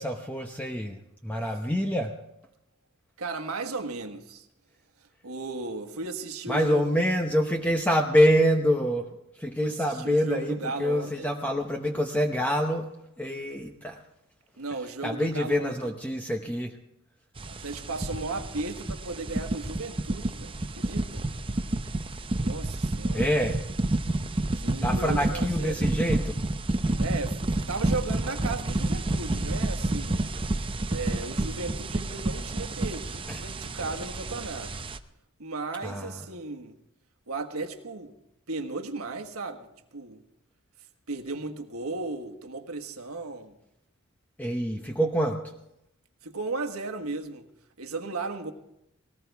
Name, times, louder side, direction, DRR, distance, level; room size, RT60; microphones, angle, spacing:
voice 1, 0.0-2.2 6.5-9.1 9.3-12.9 13.2-14.0 15.0-16.8 23.1-23.6 24.8-26.4 33.3-33.5 35.8-36.2 44.4-45.5, equal, 5° left, 0.8 m, -26 dB
voice 2, 3.2-4.5 5.2-6.9 9.6-11.3 14.6-15.9 17.5-21.3 22.3-23.3 24.5-25.8 27.0-30.3 30.9-34.8 35.4-36.8 37.3-38.2 38.5-40.2 41.1-43.6 46.2-47.5 47.8-48.5, right 3 dB, 85° right, 1.5 m, -35 dB
sound 1, 17.4-35.0, right 2 dB, 25° right, 0.7 m, -30 dB
20.0 x 18.5 x 3.5 m
head